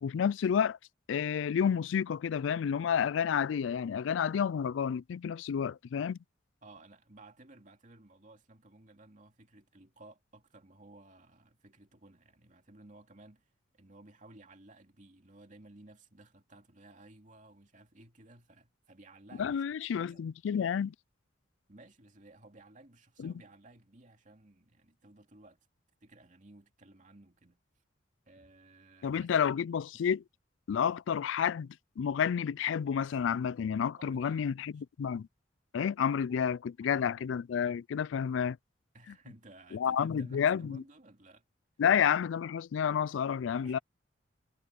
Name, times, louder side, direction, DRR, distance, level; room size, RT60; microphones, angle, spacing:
voice 1, 0.0-0.8 1.1-6.2 19.4-20.9 23.2-23.3 29.0-30.2 30.7-35.3 35.7-38.6 39.7-40.8 41.8-43.8, left 7 dB, 80° left, 0.3 m, -30 dB
voice 2, 6.6-13.5 13.7-19.6 19.9-20.3 21.7-25.6 26.0-27.6 28.3-29.3 34.0-34.5 36.3-36.4 36.8-37.4 38.9-41.4 43.6-43.8, right 2 dB, 45° right, 2.5 m, -56 dB
head